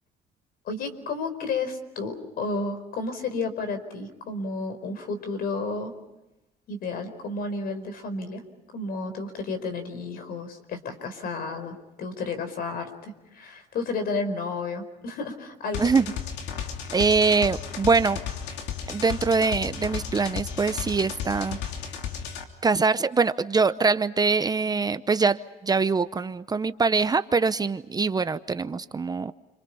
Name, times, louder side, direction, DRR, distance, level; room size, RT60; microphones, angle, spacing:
voice 1, 0.6-5.9 6.7-8.4 8.7-15.9, left 3 dB, 65° left, 9 dB, 4.9 m, -32 dB
sound 1, 15.7-22.4, left 8 dB, 90° left, 3.1 m, -34 dB
voice 2, 16.9-18.2 18.9-21.6 22.6-29.3, right 4 dB, 25° right, 13 dB, 0.8 m, -23 dB
29.5 x 27.0 x 5.6 m, 0.99 s
cardioid pair, 110°, 17 cm